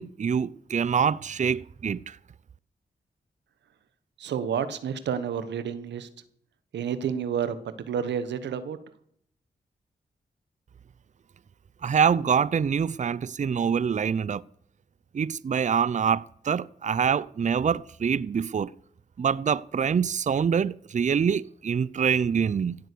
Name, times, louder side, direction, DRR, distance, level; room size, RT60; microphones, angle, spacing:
voice 1, 0.0-2.2 11.8-14.4 15.1-18.7 19.2-22.8, right 7 dB, 45° right, 0.5 m, -25 dB
voice 2, 4.2-6.1 6.7-8.8, right 8 dB, 90° right, 1.1 m, -30 dB
16.5 x 8.1 x 6.8 m
cardioid pair, 45°, 18 cm